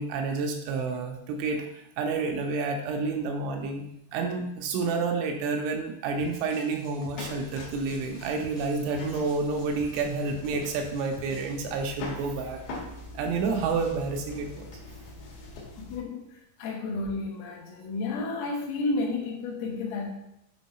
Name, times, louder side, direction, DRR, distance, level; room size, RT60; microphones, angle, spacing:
voice 1, 0.0-3.9 4.1-12.6 13.1-14.8, right 4 dB, 85° right, 2 dB, 3.1 m, -29 dB
sound 1, 6.2-11.6, left 1 dB, 5° left, 0.6 m, -49 dB
sound 2, 7.2-16.0, left 2 dB, 65° left, 3.1 m, -43 dB
voice 2, 15.7-20.1, left 3 dB, 85° left, 0 dB, 3.8 m, -32 dB
8.4 x 3.6 x 4.4 m, 0.80 s
omnidirectional pair, 5.7 m